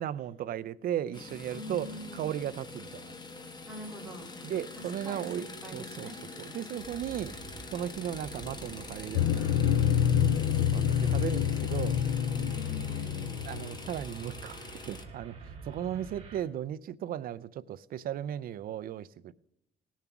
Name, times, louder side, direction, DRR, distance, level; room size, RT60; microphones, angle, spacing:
voice 1, 0.0-3.1 4.4-5.5 5.7-7.4 7.7-10.3 10.7-12.0 13.4-14.6 14.9-19.3, right 10 dB, 45° right, 0.4 m, -36 dB
sound 1, 1.1-15.0, left 3 dB, 20° left, 1.0 m, -45 dB
voice 2, 1.5-2.2 3.6-4.3 5.0-6.2 12.3-13.4, equal, 5° right, 3.2 m, -44 dB
sound 2, 6.8-16.4, right 4 dB, 25° right, 3.6 m, -48 dB
sound 3, 9.1-13.9, left 9 dB, 80° left, 0.5 m, -27 dB
17.5 x 7.2 x 5.9 m
cardioid pair, 175°, 21 cm